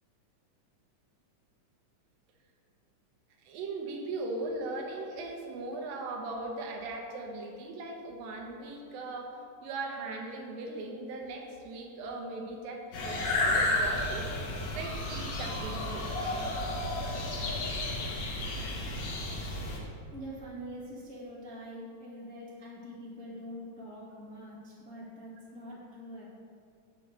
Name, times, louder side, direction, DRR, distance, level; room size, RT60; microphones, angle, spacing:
voice 1, 3.5-16.1, right 2 dB, 90° right, 1 dB, 2.8 m, -39 dB
sound 1, 12.9-19.8, left 2 dB, 85° left, 3.1 m, -32 dB
voice 2, 20.1-26.3, equal, 10° left, -6 dB, 0.4 m, -44 dB
10.5 x 7.9 x 3.3 m, 2.4 s
omnidirectional pair, 3.9 m